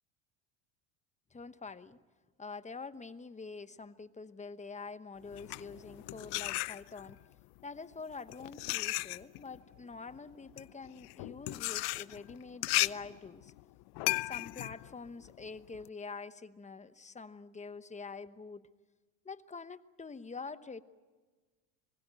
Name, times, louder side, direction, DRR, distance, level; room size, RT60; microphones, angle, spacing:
voice 1, 1.3-2.0 2.4-7.2 7.6-13.5 14.2-18.7 19.2-20.8, left 4 dB, 15° left, 12 dB, 1.0 m, -46 dB
sound 1, 5.2-7.2 8.0-15.9, left 21 dB, 60° left, 0.7 m, -36 dB
25.5 x 21.0 x 9.1 m, 1.3 s
supercardioid pair, 105°, 45 cm